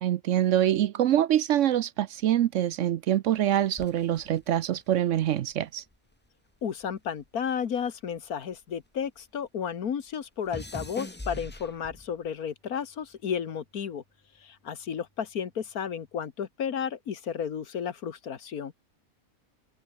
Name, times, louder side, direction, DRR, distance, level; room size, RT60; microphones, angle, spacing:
voice 1, 0.0-5.8, right 11 dB, 65° right, 0.9 m, -25 dB
sound 1, 3.8-6.3 6.5-9.2 9.5-12.3 13.0-13.4, left 1 dB, 10° left, 0.9 m, -44 dB
voice 2, 6.6-14.0 14.4-18.7, left 7 dB, 80° left, 1.9 m, -33 dB
omnidirectional pair, 1.5 m